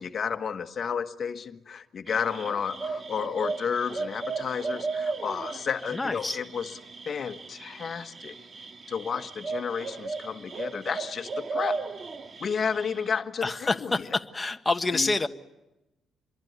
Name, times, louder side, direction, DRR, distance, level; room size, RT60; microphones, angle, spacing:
voice 1, 0.0-6.7 7.1-8.3 8.9-11.8 12.4-13.9 14.9-15.1, left 6 dB, 50° left, 8 dB, 1.4 m, -31 dB
sound 1, 2.1-13.2, right 4 dB, 40° right, 1.9 m, -36 dB
voice 2, 5.9-6.4 13.4-15.3, left 3 dB, 15° left, 6 dB, 1.4 m, -27 dB
26.5 x 22.5 x 9.6 m, 0.95 s
cardioid pair, 90°, 0 cm